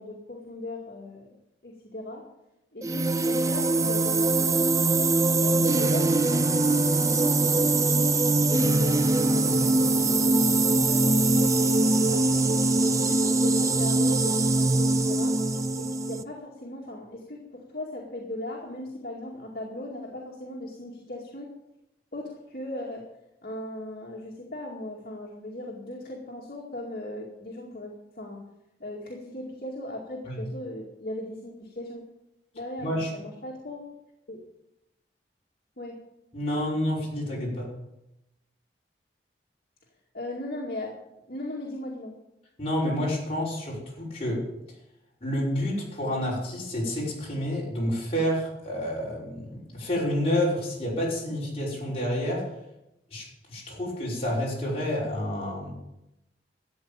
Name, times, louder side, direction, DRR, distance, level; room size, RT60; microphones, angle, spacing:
voice 1, 0.0-1.3 1.6-2.2 2.7-9.1 9.6-12.6 12.9-15.4 15.8-21.5 22.1-23.1 23.4-28.4 28.8-32.0 32.5-33.9 34.3-34.4 35.8-36.0 40.1-41.0 41.3-42.1, left 1 dB, 60° left, -4 dB, 2.3 m, -38 dB
sound 1, 2.8-16.2, right 2 dB, 20° right, 0.5 m, -22 dB
voice 2, 32.8-33.1 36.3-37.7 42.6-44.4 45.2-52.4 53.1-55.7, equal, 35° left, -5 dB, 5.7 m, -29 dB
13.0 x 8.5 x 8.9 m, 0.90 s
head